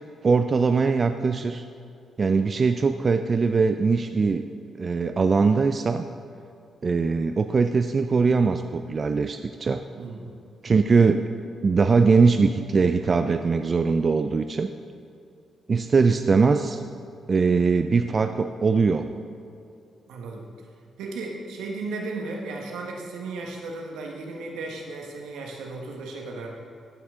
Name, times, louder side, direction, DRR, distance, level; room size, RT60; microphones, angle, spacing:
voice 1, 0.2-1.6 2.2-4.5 4.8-6.0 6.8-9.8 10.6-11.2 11.6-14.7 15.7-16.8 17.3-19.1, right 4 dB, 45° right, 8 dB, 0.4 m, -21 dB
voice 2, 9.9-10.3 20.1-20.4 21.0-26.5, right 3 dB, 80° right, 0 dB, 1.3 m, -35 dB
15.0 x 6.1 x 3.7 m, 2.6 s
supercardioid pair, 50°, 0 cm